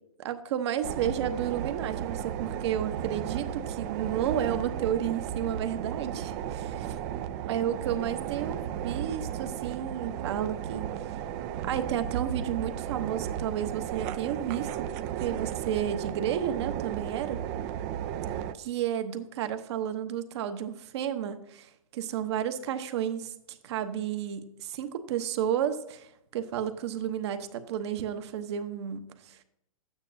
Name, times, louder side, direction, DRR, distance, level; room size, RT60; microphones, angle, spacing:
voice 1, 0.2-7.0 7.5-11.1 11.6-14.9 15.2-17.4 18.6-29.4, right 10 dB, 50° right, 9 dB, 1.0 m, -32 dB
sound 1, 0.8-18.5, right 10 dB, 30° right, 0.4 m, -34 dB
12.0 x 9.0 x 2.7 m, 0.79 s
hypercardioid pair, 140°, 18 cm